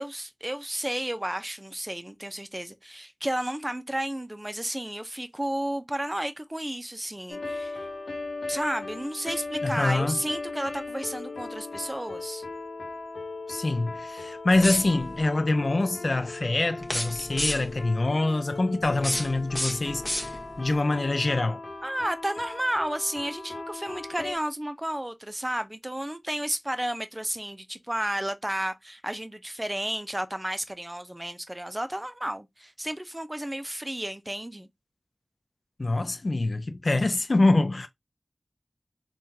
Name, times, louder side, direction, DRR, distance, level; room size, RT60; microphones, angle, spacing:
voice 1, 0.0-7.9 8.5-12.4 21.8-34.7, right 1 dB, 20° right, 0.5 m, -32 dB
sound 1, 7.3-24.4, left 3 dB, 85° left, 0.8 m, -38 dB
voice 2, 9.6-10.2 13.5-21.6 35.8-37.9, left 2 dB, 65° left, 0.4 m, -25 dB
sound 2, 14.6-15.2 16.8-17.9 18.8-20.7, left 1 dB, 25° left, 1.0 m, -32 dB
3.6 x 2.3 x 2.7 m
wide cardioid pair, 45°, 0 cm